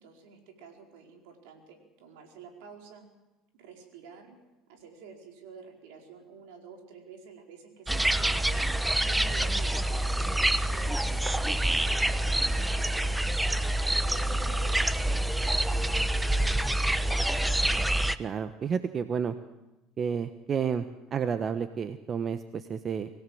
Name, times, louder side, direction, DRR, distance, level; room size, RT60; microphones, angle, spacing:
voice 1, 0.0-3.0 3.5-4.4 4.7-13.1 13.9-16.9, right 5 dB, 75° right, 3 dB, 4.7 m, -50 dB
sound 1, 7.9-18.2, right 1 dB, 10° right, 1.1 m, -27 dB
voice 2, 18.2-19.4 20.0-23.1, right 7 dB, 40° right, 10 dB, 1.2 m, -31 dB
24.5 x 17.0 x 7.9 m, 1.0 s
hypercardioid pair, 75°, 0 cm